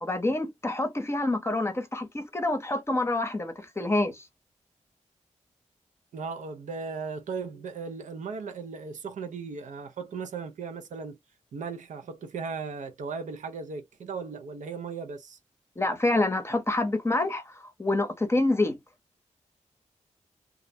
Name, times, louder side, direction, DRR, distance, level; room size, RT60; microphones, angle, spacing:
voice 1, 0.0-4.3 15.8-18.8, left 2 dB, 20° left, 0.7 m, -27 dB
voice 2, 6.1-11.2 11.5-15.4, right 5 dB, 85° right, 0.5 m, -37 dB
2.4 x 2.1 x 2.6 m
cardioid pair, 65°, 12 cm